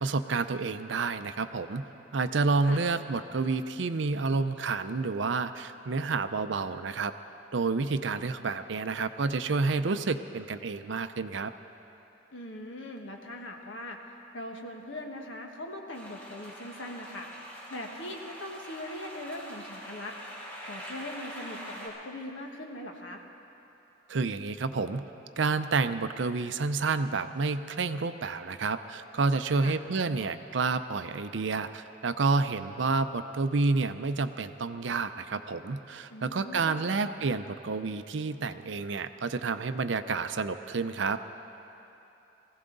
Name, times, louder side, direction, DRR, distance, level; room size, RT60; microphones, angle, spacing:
voice 1, 0.0-1.8 2.1-7.1 7.5-11.5 24.1-25.0 25.4-41.2, right 4 dB, 70° right, 10 dB, 0.6 m, -29 dB
voice 2, 12.3-14.0 14.3-17.3 17.7-20.1 20.7-23.2 29.5-29.7 36.1-36.8, left 1 dB, 80° left, 2 dB, 1.5 m, -41 dB
sound 1, 15.9-21.9, equal, 10° left, 2.9 m, -44 dB
20.5 x 16.0 x 4.0 m, 2.9 s
head